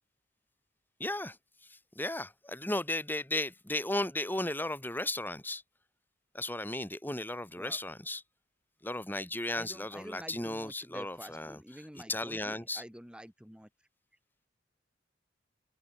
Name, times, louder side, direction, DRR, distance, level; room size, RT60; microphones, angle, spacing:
voice 1, 1.0-1.4 2.0-5.6 6.3-8.2 8.8-11.6 12.1-12.8, left 1 dB, 10° left, 5.6 m, -35 dB
voice 2, 9.5-13.7, equal, 5° right, 5.4 m, -48 dB
open air
head